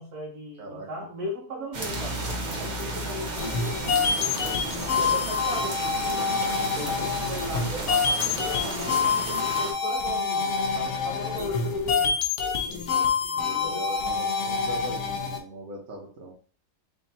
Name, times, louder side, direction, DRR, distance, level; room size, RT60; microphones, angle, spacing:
voice 1, 0.0-4.4 5.0-6.2 6.7-12.2 13.4-13.9, left 1 dB, 75° right, -1 dB, 1.6 m, -37 dB
voice 2, 0.6-0.9 4.7-5.2 11.4-11.5 12.7-16.3, right 1 dB, 60° right, -1 dB, 1.4 m, -41 dB
sound 1, 1.7-9.7, right 2 dB, 40° right, 0.6 m, -33 dB
sound 2, 3.4-15.4, left 5 dB, 60° left, 0.9 m, -27 dB
3.6 x 2.8 x 4.1 m, 0.40 s
omnidirectional pair, 1.6 m